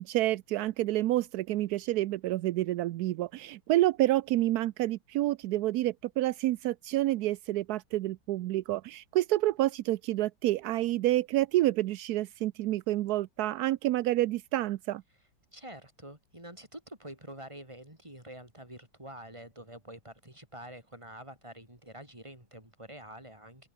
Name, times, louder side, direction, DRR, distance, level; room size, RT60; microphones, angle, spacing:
voice 1, 0.0-15.0, right 15 dB, 75° right, 0.9 m, -28 dB
voice 2, 15.5-23.7, right 1 dB, 15° right, 6.3 m, -47 dB
open air
omnidirectional pair, 2.2 m